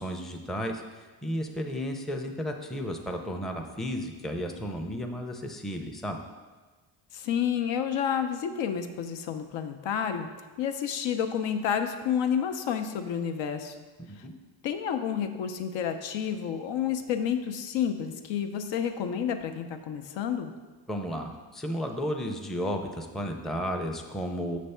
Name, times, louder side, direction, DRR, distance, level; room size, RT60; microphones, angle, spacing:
voice 1, 0.0-6.2 14.0-14.3 20.9-24.6, equal, ahead, 3 dB, 0.4 m, -33 dB
voice 2, 7.1-10.3 10.6-13.8 14.6-20.5, left 8 dB, 90° left, 7 dB, 0.6 m, -30 dB
6.2 x 3.4 x 5.5 m, 1.3 s
cardioid pair, 110°, 44 cm